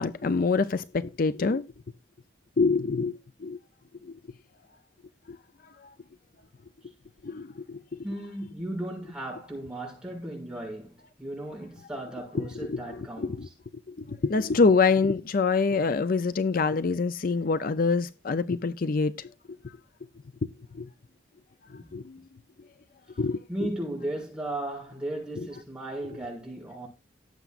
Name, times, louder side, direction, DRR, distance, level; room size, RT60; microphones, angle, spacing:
voice 1, 0.0-1.6 2.6-3.6 5.3-5.4 7.2-8.0 12.3-12.8 13.2-13.5 13.9-19.1 20.7-20.9 21.7-22.2 23.2-23.4, left 4 dB, 55° left, 0.5 m, -25 dB
voice 2, 8.0-13.5 21.8-21.9 23.5-26.9, right 1 dB, 5° right, 6.6 m, -36 dB
18.0 x 8.1 x 2.5 m
head